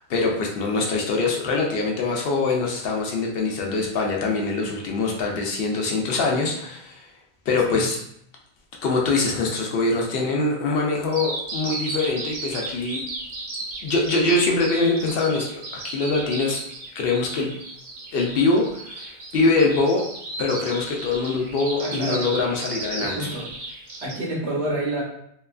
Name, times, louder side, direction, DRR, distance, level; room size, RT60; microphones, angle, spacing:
voice 1, 0.0-7.0 7.5-8.0 8.8-13.0 13.8-15.5 15.8-16.6 17.0-17.5 18.1-20.0 20.4-23.1, left 3 dB, 65° left, 0 dB, 0.7 m, -23 dB
Bird vocalization bird call bird song, 11.1-24.1, right 2 dB, 55° right, 0.8 m, -34 dB
voice 2, 21.8-22.3 23.0-25.0, right 1 dB, 75° right, -2 dB, 1.0 m, -29 dB
2.8 x 2.3 x 2.3 m, 0.72 s
omnidirectional pair, 1.1 m